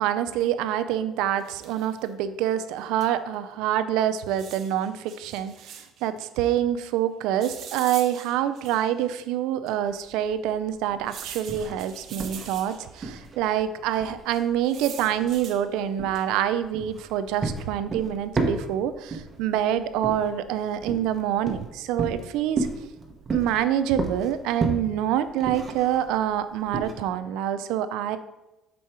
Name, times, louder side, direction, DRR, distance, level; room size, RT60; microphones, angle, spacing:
voice 1, 0.0-22.7 23.3-28.2, right 10 dB, 80° right, 12 dB, 0.4 m, -26 dB
sound 1, 1.4-2.0 3.0-3.1 3.3-3.4 4.3-6.1 7.4-9.0 9.7-9.8 11.1-13.0 14.3-15.6 16.1-16.5, right 7 dB, 55° right, 0.8 m, -43 dB
sound 2, 9.9-26.9, right 3 dB, 30° right, 1.0 m, -33 dB
6.2 x 4.6 x 4.4 m, 0.98 s
cardioid pair, 115°, 0 cm